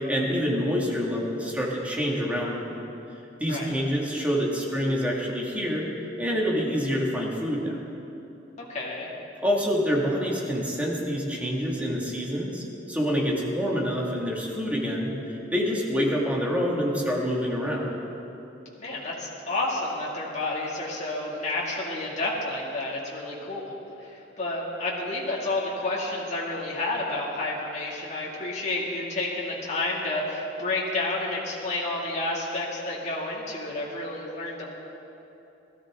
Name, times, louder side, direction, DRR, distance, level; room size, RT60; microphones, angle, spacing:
voice 1, 0.0-2.6 3.4-5.9 6.2-7.8 9.4-17.9, equal, 10° right, -3 dB, 2.0 m, -27 dB
voice 2, 8.7-9.1 18.8-23.7 24.0-34.7, left 2 dB, 40° left, -5 dB, 2.3 m, -30 dB
17.5 x 13.5 x 3.7 m, 3.0 s
head